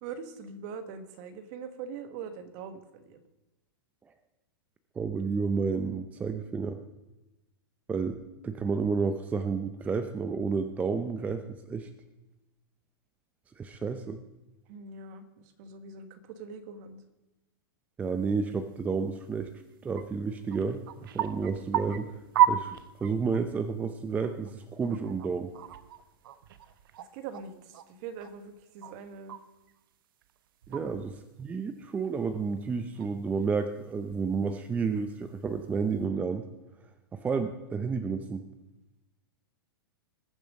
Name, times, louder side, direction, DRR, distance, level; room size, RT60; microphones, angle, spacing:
voice 1, 0.0-3.2 14.7-15.2 15.6-17.0 27.1-27.5 28.0-29.4 30.7-30.9, right 6 dB, 45° right, 10 dB, 1.5 m, -42 dB
voice 2, 5.0-6.8 7.9-8.2 8.4-11.9 13.6-14.2 18.0-19.5 19.8-22.1 22.5-25.5 30.7-36.4 37.1-38.4, right 5 dB, 10° right, 9 dB, 0.6 m, -31 dB
sound 1, 18.5-18.6 19.0-19.1 19.4-19.5 19.7-20.0 20.3-23.4 23.8-23.9 24.2-27.8 28.2-29.8 30.2-31.2 31.6-34.0 34.5-34.6 35.5-35.9, right 10 dB, 65° right, 0.9 m, -33 dB
20.0 x 7.2 x 5.3 m, 1.0 s
hypercardioid pair, 140°, 12 cm